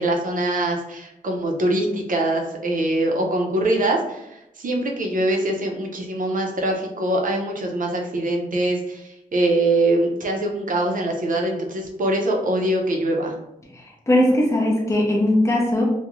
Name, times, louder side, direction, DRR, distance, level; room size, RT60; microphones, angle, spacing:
voice 1, 0.0-13.3, right 1 dB, 65° right, 1 dB, 0.5 m, -23 dB
voice 2, 13.7-15.8, left 1 dB, 20° left, -2 dB, 0.5 m, -19 dB
2.4 x 2.1 x 2.9 m, 0.87 s
wide cardioid pair, 130°, 15 cm